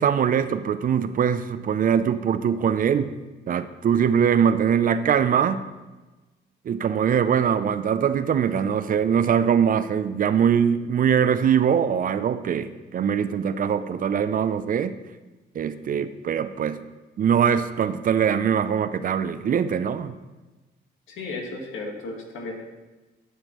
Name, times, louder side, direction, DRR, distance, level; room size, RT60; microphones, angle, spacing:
voice 1, 0.0-3.1 3.5-5.6 6.7-15.0 15.6-16.8 17.2-20.2, right 8 dB, 45° right, 12 dB, 0.4 m, -22 dB
voice 2, 21.1-22.6, left 3 dB, 80° left, 1 dB, 1.5 m, -34 dB
11.0 x 6.4 x 3.0 m, 1.2 s
cardioid pair, 90°, 20 cm